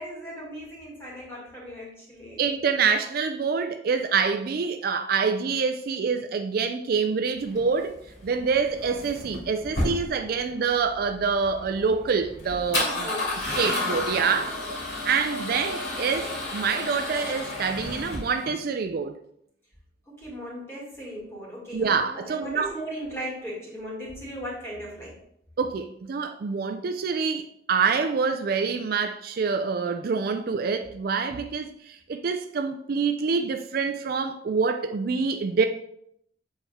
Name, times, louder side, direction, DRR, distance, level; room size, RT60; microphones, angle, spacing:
voice 1, 0.0-2.4 12.8-13.4 20.1-25.1, equal, 15° left, 2.2 m, -37 dB
voice 2, 2.4-7.9 8.2-13.1 13.6-14.5 15.0-19.1 21.7-22.7 25.6-35.7, right 5 dB, 50° right, 0.3 m, -26 dB
Male speech man speaking / Car / Engine starting, 7.4-18.5, left 2 dB, 70° left, 2.6 m, -32 dB
7.3 x 4.2 x 3.5 m
head